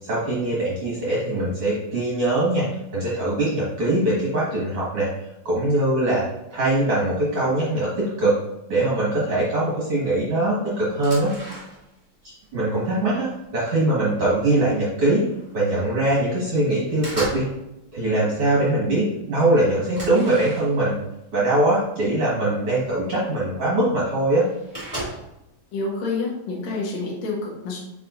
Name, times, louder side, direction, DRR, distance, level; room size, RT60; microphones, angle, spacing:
voice 1, 0.0-2.7 2.9-5.1 5.5-6.2 6.5-8.3 8.7-11.4 12.5-15.2 15.5-17.5 17.9-20.9 21.3-24.5, right 1 dB, 50° right, -7 dB, 1.7 m, -22 dB
sound 1, 10.9-12.1 12.4-13.6 14.2-14.4 14.7-15.6 16.1-16.4 16.7-17.6 17.9-18.4 18.9-19.0 19.2-19.3 19.9-21.0 21.8-21.9 22.4-22.5 23.6-23.7 23.9-24.0 24.2-25.5, right 1 dB, 25° right, 0.7 m, -36 dB
voice 2, 25.7-27.8, left 3 dB, 55° left, -3 dB, 2.2 m, -28 dB
9.0 x 4.9 x 2.6 m, 0.89 s
omnidirectional pair, 5.0 m